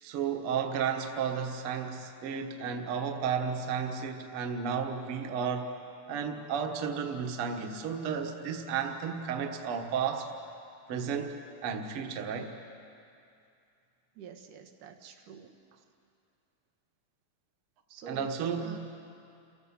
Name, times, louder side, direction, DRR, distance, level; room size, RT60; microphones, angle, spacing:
voice 1, 0.0-5.7 6.1-10.3 10.9-11.3 11.6-12.5 18.1-18.8, right 6 dB, 55° right, 4 dB, 1.9 m, -33 dB
voice 2, 14.2-15.5 17.9-18.3 18.6-18.8, right 6 dB, 85° right, 3 dB, 2.9 m, -47 dB
28.5 x 15.5 x 7.3 m, 2.5 s
omnidirectional pair, 3.6 m